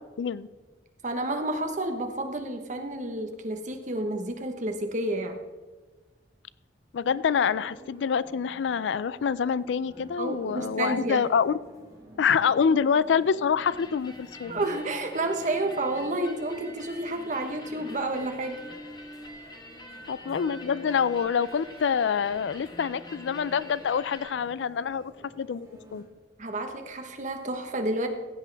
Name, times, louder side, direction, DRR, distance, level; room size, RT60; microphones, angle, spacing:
voice 1, 1.0-5.4 10.2-11.2 14.5-18.6 26.4-28.1, right 2 dB, 45° right, 5 dB, 1.2 m, -30 dB
voice 2, 6.9-11.5 12.2-14.5 20.1-25.1 25.4-25.7 25.9-26.0, left 6 dB, 85° left, 18 dB, 0.4 m, -26 dB
sound 1, 7.0-26.0, equal, 20° right, 3.2 m, -49 dB
sound 2, 13.6-24.3, left 1 dB, 25° left, 1.0 m, -47 dB
15.5 x 8.1 x 3.4 m, 1.3 s
head